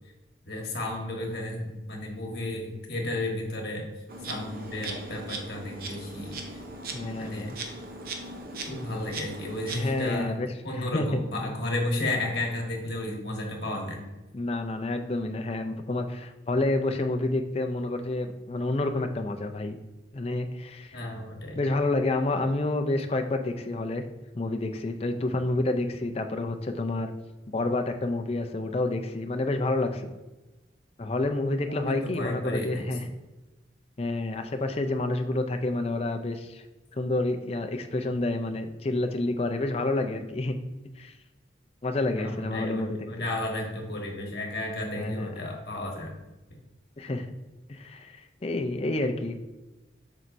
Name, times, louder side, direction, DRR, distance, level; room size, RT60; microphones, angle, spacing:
voice 1, 0.5-3.9 4.3-6.6 7.2-7.5 8.7-10.4 10.6-14.1 20.9-21.6 31.7-32.8 42.2-46.2, left 1 dB, 55° left, 0 dB, 1.4 m, -33 dB
Insect, 4.1-10.1, right 2 dB, 50° right, 0.8 m, -39 dB
voice 2, 6.9-7.6 9.7-10.5 10.7-11.5 14.3-19.8 20.1-21.0 21.6-24.0 24.3-27.1 27.5-30.1 31.0-33.0 34.0-36.6 36.9-40.6 41.0-41.1 41.8-43.0 45.0-45.3 47.0-47.3 47.7-49.4, left 2 dB, 30° left, 6 dB, 0.5 m, -29 dB
7.5 x 5.3 x 2.6 m, 1.1 s
head